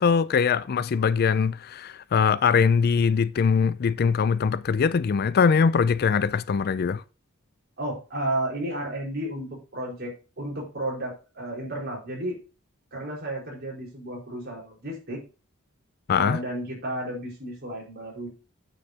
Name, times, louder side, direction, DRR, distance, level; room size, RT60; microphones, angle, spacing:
voice 1, 0.0-7.0 16.1-16.4, left 6 dB, 50° left, 0.4 m, -22 dB
voice 2, 7.8-12.4 12.9-15.2 16.1-18.3, right 1 dB, 50° right, 4.5 m, -32 dB
9.0 x 7.5 x 2.8 m
head